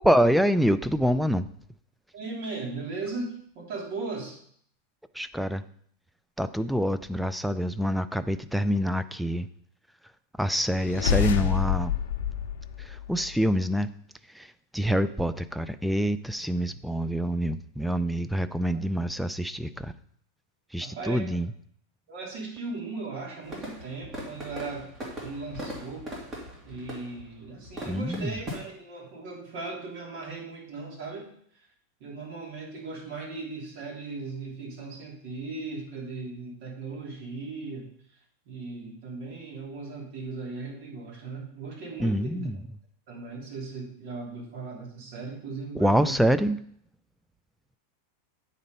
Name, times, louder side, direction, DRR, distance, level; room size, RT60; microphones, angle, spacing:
voice 1, 0.0-1.5 5.1-5.6 6.4-9.5 10.4-11.9 12.8-13.9 14.3-19.9 20.7-21.5 27.8-28.4 42.0-42.6 45.7-46.6, equal, ahead, 13 dB, 0.3 m, -26 dB
voice 2, 2.1-4.4 20.8-21.2 22.1-24.9 25.2-26.1 26.6-31.3 32.0-37.9 38.4-42.5 43.1-46.2, right 3 dB, 55° right, -3 dB, 3.3 m, -37 dB
sound 1, 10.7-13.5, left 9 dB, 80° left, 0.7 m, -28 dB
sound 2, 23.4-28.6, equal, 25° right, 2.3 m, -40 dB
9.0 x 4.3 x 5.3 m, 0.62 s
supercardioid pair, 150°, 0 cm